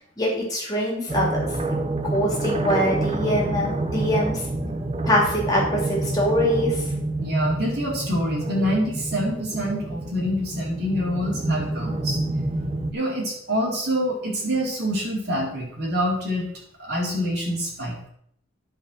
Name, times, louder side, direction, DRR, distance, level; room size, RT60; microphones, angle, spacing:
voice 1, 0.2-1.5 2.1-4.4 5.0-6.8, equal, 20° left, -3 dB, 2.9 m, -23 dB
sound 1, 1.1-12.9, right 2 dB, 30° right, 0.8 m, -28 dB
voice 2, 7.2-12.2 12.9-16.5 16.8-18.1, equal, 50° right, -4 dB, 4.0 m, -26 dB
10.5 x 5.5 x 6.1 m, 0.67 s
head